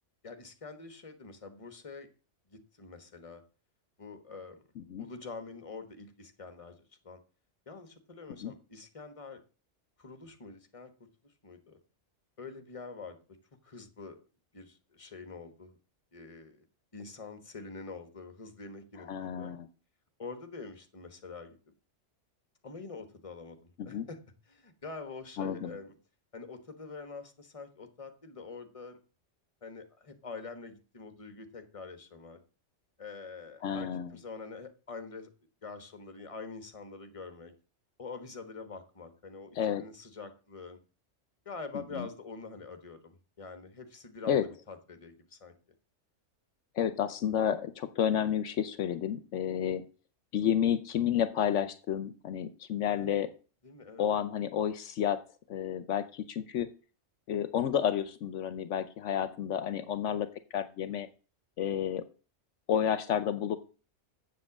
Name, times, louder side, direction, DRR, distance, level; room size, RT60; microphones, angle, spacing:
voice 1, 0.2-2.1 2.5-3.4 4.0-4.6 5.0-7.2 7.7-9.4 10.0-10.9 11.2-11.8 12.4-13.2 13.6-14.2 14.5-15.8 16.1-16.6 16.9-19.6 20.2-21.6 22.6-24.2 24.5-25.9 26.3-29.0 29.6-32.4 33.0-35.3 35.6-37.5 38.0-40.8 41.4-45.5 52.9-53.1 53.6-54.1, left 4 dB, 30° left, 8 dB, 1.4 m, -45 dB
voice 2, 19.1-19.7 23.8-24.1 25.4-25.7 33.6-34.2 39.6-39.8 41.9-42.1 44.3-44.5 46.8-49.8 50.3-53.3 54.0-55.2 55.5-56.7 57.3-61.1 61.6-62.0 62.7-63.6, left 9 dB, 75° left, 13 dB, 1.0 m, -30 dB
7.6 x 7.5 x 7.2 m, 0.37 s
omnidirectional pair, 1.3 m